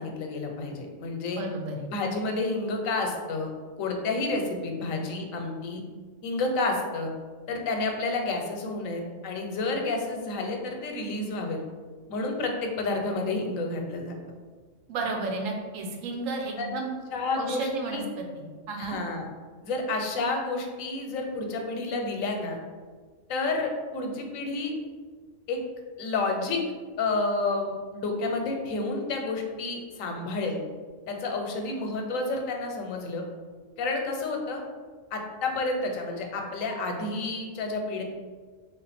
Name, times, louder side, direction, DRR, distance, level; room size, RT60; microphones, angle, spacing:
voice 1, 0.0-1.4 1.9-3.5 3.8-5.8 6.2-7.1 7.5-11.6 12.1-14.1 16.6-16.7 17.1-18.0 18.8-19.3 19.6-22.6 23.3-24.7 25.5-25.6 26.0-26.6 27.0-30.6 31.1-33.2 33.8-34.6 35.1-38.0, left 3 dB, 90° left, 3 dB, 1.0 m, -30 dB
voice 2, 1.4-1.9 14.9-16.9 17.3-18.0 18.4-19.0, right 3 dB, 85° right, 1 dB, 1.0 m, -32 dB
3.3 x 2.4 x 4.1 m, 1.5 s
omnidirectional pair, 1.3 m